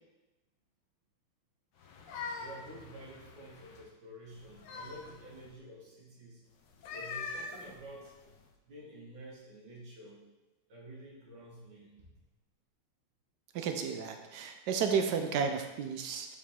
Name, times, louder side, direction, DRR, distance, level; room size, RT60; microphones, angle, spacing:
sound 1, 1.8-3.9 4.3-5.5 6.7-8.5, left 4 dB, 70° left, 1.2 m, -44 dB
voice 1, 2.4-6.4 6.9-8.1 8.7-10.2 10.7-12.2, right 1 dB, 65° right, -3 dB, 2.1 m, -50 dB
voice 2, 13.5-16.4, right 6 dB, 80° right, 6 dB, 0.9 m, -32 dB
7.0 x 4.9 x 3.6 m, 1.1 s
omnidirectional pair, 2.3 m